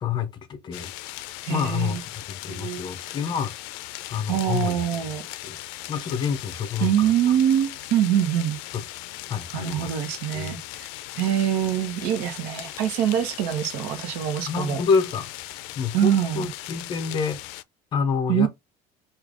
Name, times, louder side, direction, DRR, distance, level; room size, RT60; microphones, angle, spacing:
voice 1, 0.0-3.5 4.1-4.8 5.4-5.6 5.9-7.1 8.7-8.8 9.3-9.9 10.3-10.6 14.5-15.3 15.8-17.4 17.9-18.5, left 6 dB, 25° left, 0.5 m, -28 dB
sound 1, 0.7-17.6, left 16 dB, 85° left, 0.4 m, -38 dB
voice 2, 1.4-2.0 2.5-2.9 4.3-5.2 6.8-8.6 9.5-10.9 11.2-14.8 15.9-16.5 18.3-18.5, right 10 dB, 70° right, 0.8 m, -24 dB
4.7 x 2.4 x 2.5 m
cardioid pair, 175°, 17 cm